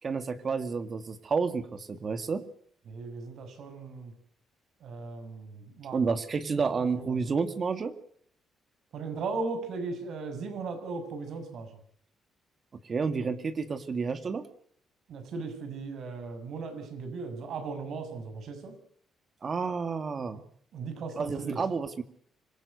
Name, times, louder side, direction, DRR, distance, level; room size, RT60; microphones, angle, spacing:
voice 1, 0.0-2.4 5.9-8.0 12.8-14.5 19.4-20.4 21.2-22.0, right 5 dB, 40° right, 10 dB, 2.0 m, -30 dB
voice 2, 2.9-4.1 4.8-6.0 6.5-7.1 8.9-11.7 15.1-18.7 20.7-21.6, right 4 dB, 70° right, 9 dB, 6.7 m, -37 dB
25.5 x 17.0 x 8.1 m, 0.64 s
cardioid pair, 90°, 0 cm